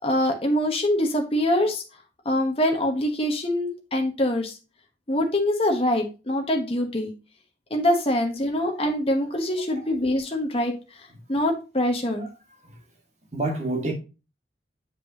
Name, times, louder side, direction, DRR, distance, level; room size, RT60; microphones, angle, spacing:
voice 1, 0.0-1.8 2.2-4.5 5.1-7.1 7.7-10.8 11.3-12.3, left 1 dB, 30° left, 1.0 m, -24 dB
voice 2, 13.3-13.9, right 2 dB, 40° right, 1.8 m, -28 dB
7.5 x 5.2 x 2.8 m
head